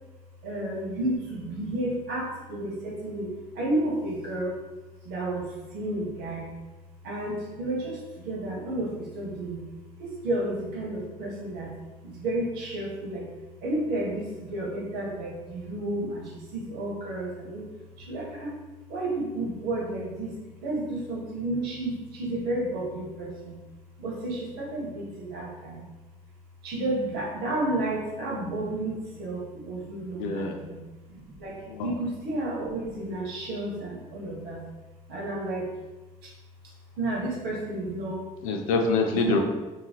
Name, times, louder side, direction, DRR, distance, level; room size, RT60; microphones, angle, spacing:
voice 1, 0.4-4.6 5.0-6.5 7.0-9.6 10.0-11.7 12.0-13.3 13.6-17.6 18.0-18.5 18.9-23.6 24.0-25.8 26.6-30.8 31.1-34.6 35.1-35.7 36.2-36.3 37.0-38.3 39.1-39.4, right 1 dB, 65° right, -3 dB, 1.0 m, -31 dB
voice 2, 30.2-30.6 31.7-31.9 38.4-39.4, left 3 dB, 85° left, 4 dB, 0.4 m, -25 dB
3.0 x 2.6 x 2.3 m, 1.2 s
hypercardioid pair, 55°, 18 cm